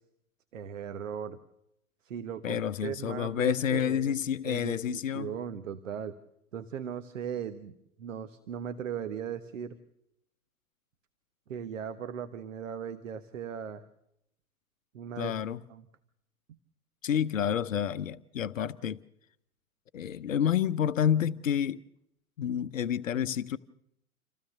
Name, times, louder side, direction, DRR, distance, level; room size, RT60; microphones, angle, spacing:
voice 1, 0.5-1.4 2.0-4.2 4.4-6.2 6.5-9.8 11.5-13.8 14.9-15.3 15.7-15.9, right 8 dB, 60° right, 1.3 m, -38 dB
voice 2, 2.4-5.4 15.2-15.6 17.0-19.0 19.9-21.8 22.4-23.6, left 9 dB, 60° left, 0.8 m, -29 dB
27.5 x 16.0 x 6.8 m
figure-of-eight pair, 100°, 44 cm